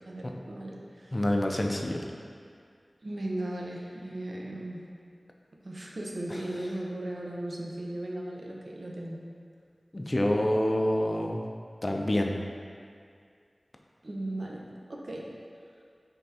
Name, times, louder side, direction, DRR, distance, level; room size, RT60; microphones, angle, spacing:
voice 1, 0.0-1.2 3.0-4.8 5.6-9.2 14.0-14.6 14.9-15.3, right 1 dB, 70° right, -2 dB, 0.6 m, -37 dB
voice 2, 1.1-2.0 6.3-6.4 9.9-11.4 11.8-12.4, left 1 dB, 35° left, 1 dB, 0.4 m, -27 dB
5.2 x 3.4 x 2.8 m, 2.2 s
wide cardioid pair, 55°, 0 cm